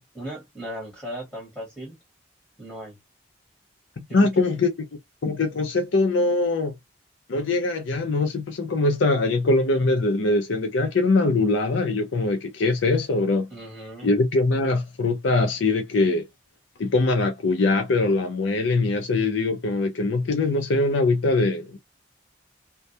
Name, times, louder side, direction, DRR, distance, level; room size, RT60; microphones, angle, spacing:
voice 1, 0.0-2.0 2.6-3.0 4.1-4.3 13.5-14.1, equal, 5° left, 1.1 m, -37 dB
voice 2, 4.1-4.7 5.2-6.7 7.3-13.5 14.0-16.2 16.8-21.8, left 3 dB, 80° left, 0.5 m, -22 dB
2.2 x 2.1 x 2.7 m
head